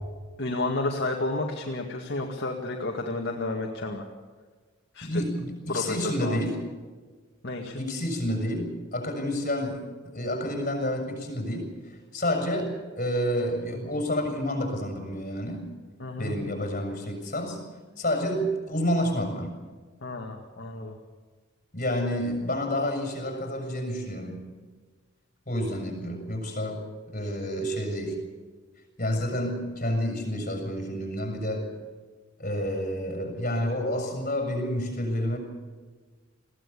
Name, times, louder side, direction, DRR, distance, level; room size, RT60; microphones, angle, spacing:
voice 1, 0.4-4.1 4.9-5.2 5.7-6.4 7.4-7.8 16.0-16.3 20.0-20.9, left 2 dB, 55° left, 1 dB, 2.1 m, -31 dB
voice 2, 5.0-6.7 7.8-15.7 16.2-17.6 18.0-19.5 21.7-24.4 25.5-26.8 27.1-28.2 29.0-31.8 32.4-35.4, equal, 40° left, 4 dB, 6.4 m, -29 dB
21.5 x 16.0 x 8.3 m, 1.4 s
head